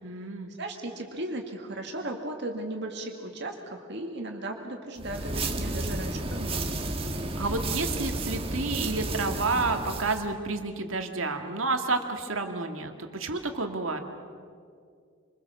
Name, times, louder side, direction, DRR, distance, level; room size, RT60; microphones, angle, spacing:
voice 1, 0.0-0.5 7.4-14.0, right 3 dB, 75° right, 5 dB, 2.2 m, -30 dB
voice 2, 0.6-6.8, right 1 dB, 55° right, 2 dB, 2.3 m, -36 dB
sound 1, 5.0-10.3, right 2 dB, 30° right, 1.7 m, -32 dB
27.0 x 21.5 x 7.2 m, 2.2 s
head